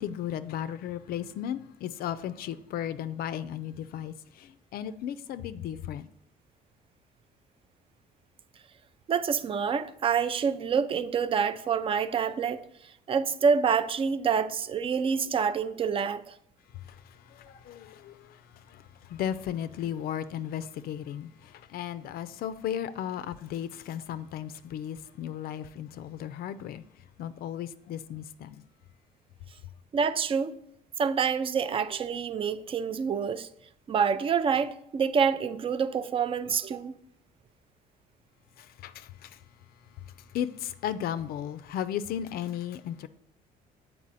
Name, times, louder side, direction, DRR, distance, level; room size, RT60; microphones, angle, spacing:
voice 1, 0.0-6.1 17.3-18.2 19.1-21.3 21.7-26.8 27.2-28.6 38.8-39.3 40.3-43.1, left 10 dB, 65° left, 0.4 m, -35 dB
voice 2, 9.1-12.6 13.1-16.3 29.9-30.5 31.0-33.5 33.9-36.9, right 6 dB, 35° right, 0.4 m, -27 dB
7.4 x 4.5 x 4.1 m
cardioid pair, 110°, 17 cm